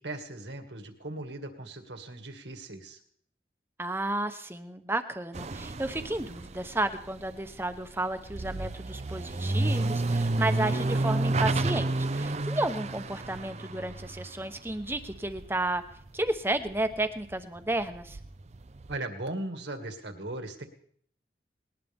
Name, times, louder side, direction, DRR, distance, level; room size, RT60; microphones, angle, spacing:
voice 1, 0.0-3.0 18.9-20.6, right 2 dB, 80° right, 5 dB, 2.2 m, -38 dB
voice 2, 3.8-15.8 16.1-18.2, right 2 dB, 15° right, 8 dB, 1.0 m, -32 dB
sound 1, 5.3-16.3 16.6-19.0, right 2 dB, 40° right, 0.6 m, -31 dB
20.0 x 19.0 x 3.6 m, 0.62 s
head